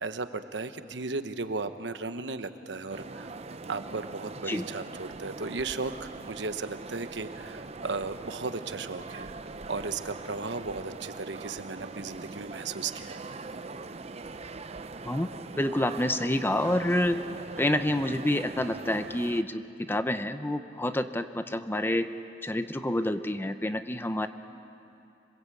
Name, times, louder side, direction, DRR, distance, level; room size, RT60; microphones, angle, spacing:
voice 1, 0.0-3.3 3.7-9.3 9.7-13.2, right 3 dB, 80° right, 10 dB, 1.1 m, -35 dB
sound 1, 2.9-19.4, right 3 dB, 35° right, 0.6 m, -42 dB
voice 2, 15.6-17.3 17.6-22.1 22.4-24.3, left 1 dB, 15° left, 9 dB, 0.8 m, -28 dB
26.5 x 20.5 x 8.4 m, 2.7 s
head